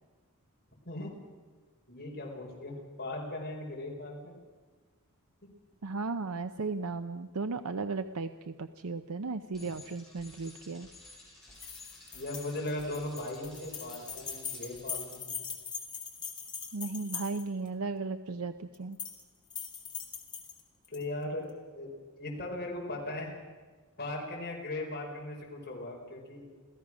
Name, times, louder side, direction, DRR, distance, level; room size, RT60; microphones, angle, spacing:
voice 1, 1.9-4.4 9.5-9.7 12.1-15.3 20.9-21.9 22.2-23.3 24.0-26.5, left 1 dB, 45° left, -2 dB, 5.1 m, -38 dB
voice 2, 5.8-10.9 16.7-19.0, right 3 dB, 70° right, 9 dB, 0.7 m, -35 dB
Bicycle, 9.5-15.2, left 2 dB, ahead, 7.2 m, -53 dB
sound 1, 11.6-17.7 18.7-19.2 19.5-21.0, left 6 dB, 20° left, 2.8 m, -41 dB
27.5 x 16.0 x 6.2 m, 1.4 s
head